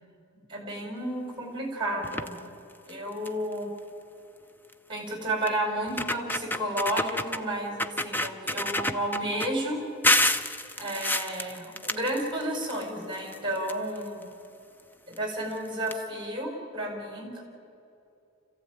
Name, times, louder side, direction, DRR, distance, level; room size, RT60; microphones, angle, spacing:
voice 1, 0.5-2.5 2.9-3.7 4.9-9.8 10.8-14.3 15.1-17.4, right 1 dB, 25° right, 2 dB, 4.7 m, -32 dB
sound 1, 2.0-2.4 2.9-3.0 3.3-3.5 4.7-4.8 5.5-5.6 5.9-7.4 7.8-9.5 10.0-12.8 13.1-14.2 15.1-15.2 15.5-15.6 15.9-16.0, left 1 dB, 10° left, 0.6 m, -28 dB
26.0 x 15.0 x 9.2 m, 2.7 s
head